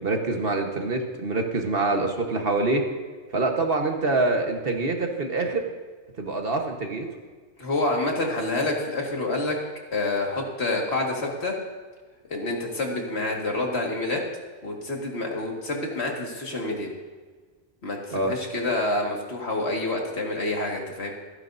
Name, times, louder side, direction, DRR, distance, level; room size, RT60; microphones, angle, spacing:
voice 1, 0.0-2.8 3.3-5.6 6.2-7.1 18.1-18.3, right 3 dB, 55° right, 3 dB, 1.5 m, -25 dB
voice 2, 7.6-9.6 9.9-11.6 12.3-14.2 14.6-16.9 17.8-21.1, left 2 dB, 60° left, 0 dB, 2.1 m, -27 dB
28.0 x 9.7 x 2.7 m, 1.4 s
omnidirectional pair, 1.2 m